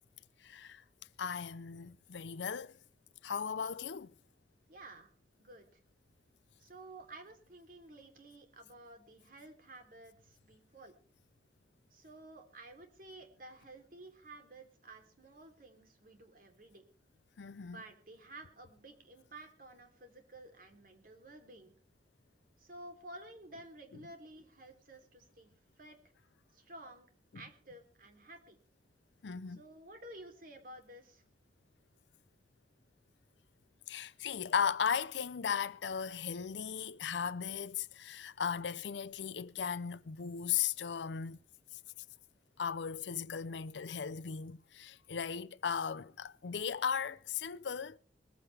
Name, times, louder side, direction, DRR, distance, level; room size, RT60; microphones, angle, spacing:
voice 1, 0.4-0.8 1.2-2.7 3.2-4.1 17.4-17.8 29.2-29.6 33.9-41.4 42.6-48.0, left 7 dB, 80° left, 0.6 m, -37 dB
voice 2, 4.7-5.1 5.4-5.7 6.6-11.0 11.9-16.8 17.6-21.7 22.6-26.0 26.5-27.1 27.3-28.6 29.5-31.2, right 2 dB, 50° right, 3.2 m, -53 dB
20.5 x 14.5 x 3.4 m
head